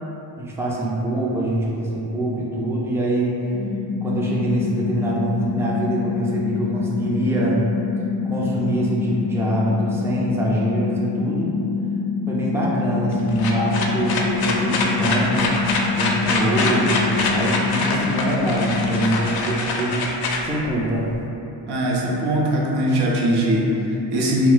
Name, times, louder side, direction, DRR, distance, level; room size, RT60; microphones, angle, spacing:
voice 1, 0.4-3.3 4.0-7.6 8.2-11.6 12.3-15.5 15.9-20.1 20.4-21.1, right 1 dB, 5° right, -6 dB, 0.4 m, -24 dB
sound 1, 3.5-19.0, left 5 dB, 50° right, 1.0 m, -26 dB
sound 2, 13.1-21.2, left 3 dB, 60° left, 0.5 m, -25 dB
voice 2, 21.7-24.5, equal, 65° right, -3 dB, 0.6 m, -21 dB
2.3 x 2.1 x 3.8 m, 2.9 s
cardioid pair, 80°, 42 cm